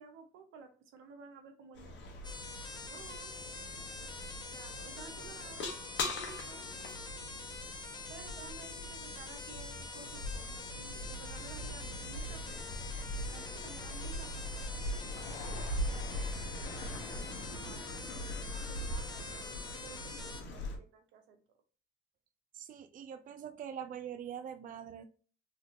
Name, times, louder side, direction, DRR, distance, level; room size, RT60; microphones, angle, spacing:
voice 1, 0.0-2.1 2.9-3.4 4.5-6.6 8.1-12.8 13.3-15.6 15.9-16.7 17.3-21.4, right 5 dB, 85° right, 0.7 m, -54 dB
sound 1, 1.7-20.8, left 1 dB, 65° left, 0.9 m, -41 dB
sound 2, 2.2-20.4, left 3 dB, 20° left, 0.6 m, -46 dB
voice 2, 22.5-25.0, right 8 dB, 45° right, 0.4 m, -43 dB
3.4 x 2.4 x 2.6 m
supercardioid pair, 65°, 20 cm